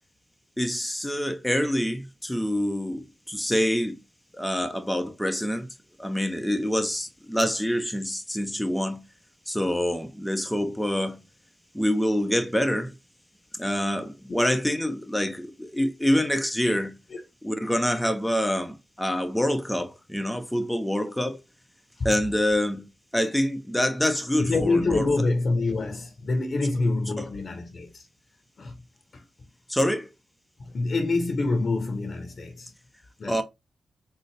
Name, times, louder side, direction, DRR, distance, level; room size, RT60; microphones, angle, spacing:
voice 1, 0.6-4.0 4.3-5.7 6.0-9.0 9.5-11.2 11.7-12.9 13.5-16.9 17.4-21.4 22.0-22.9 23.1-25.1 27.2-27.3 29.7-30.1 33.3-33.4, equal, 5° left, 0.6 m, -26 dB
voice 2, 24.4-28.0 28.6-28.8 29.1-29.2 30.6-32.7 33.2-33.4, left 3 dB, 55° left, 0.8 m, -26 dB
3.9 x 2.0 x 3.2 m
supercardioid pair, 40°, 0 cm